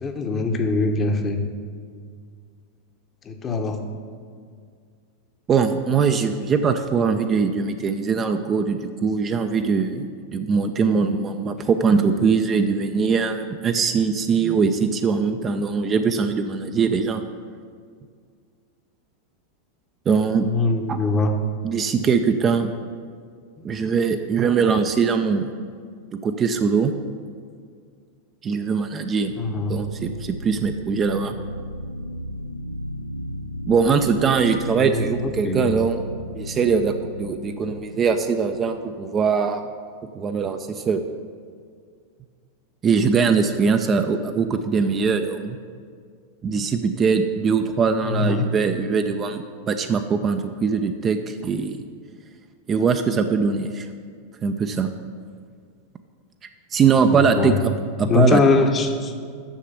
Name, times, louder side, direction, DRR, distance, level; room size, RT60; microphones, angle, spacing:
voice 1, 0.0-1.5 3.3-3.9 20.4-21.3 23.6-23.8 29.4-29.8 34.7-35.7 48.0-48.5 57.1-57.6 58.0-59.1, left 3 dB, 25° left, 5 dB, 0.9 m, -22 dB
voice 2, 5.5-17.2 20.1-20.5 20.9-21.0 21.6-22.7 23.6-25.5 26.2-26.9 28.4-29.3 29.7-31.4 33.7-36.0 36.3-39.6 40.2-41.0 42.8-45.6 46.4-51.8 52.7-53.9 54.4-54.9 56.7-57.7 58.0-58.4, right 5 dB, 25° right, 7 dB, 0.5 m, -21 dB
sound 1, 24.2-24.7 29.0-39.2, equal, 90° right, 0.4 m, -35 dB
7.1 x 6.5 x 6.9 m, 2.1 s
figure-of-eight pair, 90°, 0 cm